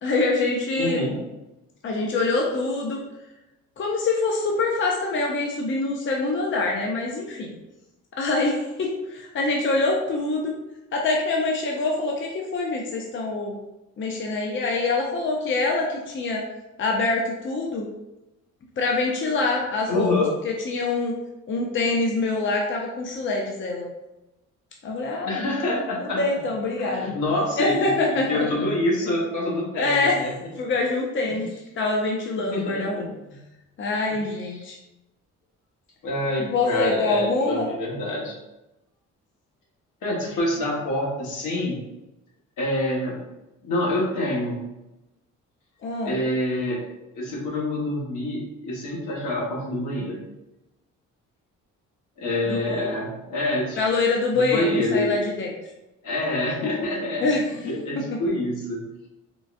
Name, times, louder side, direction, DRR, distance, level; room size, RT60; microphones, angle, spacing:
voice 1, 0.0-1.1 1.8-3.0 3.8-7.5 8.1-10.5 10.9-13.6 14.0-16.4 16.8-17.9 18.8-20.1 20.4-21.2 21.5-23.9 24.8-25.5 26.0-27.1 27.6-28.6 29.8-30.2 30.6-31.5 31.8-33.0 33.8-34.8 36.4-37.7 45.8-46.2 52.5-52.9 53.8-55.5 57.2-57.4, left 3 dB, 40° left, -1 dB, 0.6 m, -25 dB
voice 2, 0.8-1.2 19.9-20.3 25.2-26.2 26.8-30.3 31.2-31.5 32.5-33.4 34.1-34.7 36.0-38.4 40.0-41.8 42.6-43.2 43.6-44.6 46.0-46.8 47.1-50.2 52.2-53.8 54.3-55.2 56.0-57.3 57.6-58.8, left 1 dB, 75° left, -3 dB, 1.2 m, -26 dB
3.8 x 2.4 x 2.4 m, 0.98 s
cardioid pair, 90°, 30 cm